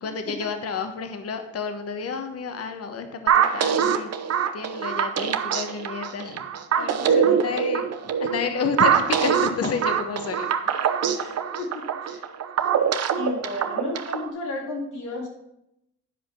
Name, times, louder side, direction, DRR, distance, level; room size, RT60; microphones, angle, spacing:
voice 1, 0.0-6.5 6.8-11.2, left 5 dB, 55° left, 7 dB, 1.2 m, -31 dB
sound 1, 3.3-14.3, right 8 dB, 55° right, 0.9 m, -23 dB
voice 2, 6.8-7.5 11.1-12.2 13.2-15.3, left 3 dB, 80° left, -1 dB, 3.1 m, -33 dB
10.0 x 5.1 x 5.9 m, 0.83 s
cardioid pair, 90°, 30 cm